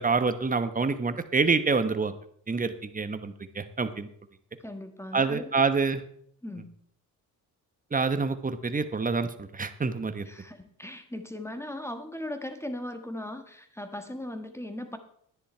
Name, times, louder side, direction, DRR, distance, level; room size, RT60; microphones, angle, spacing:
voice 1, 0.0-2.1 2.5-4.1 5.1-6.0 7.9-10.3, right 4 dB, 20° right, 10 dB, 1.1 m, -27 dB
voice 2, 4.6-5.5 6.4-6.7 10.2-15.0, left 1 dB, 5° left, 8 dB, 1.5 m, -38 dB
10.5 x 10.0 x 4.4 m, 0.66 s
cardioid pair, 75°, 38 cm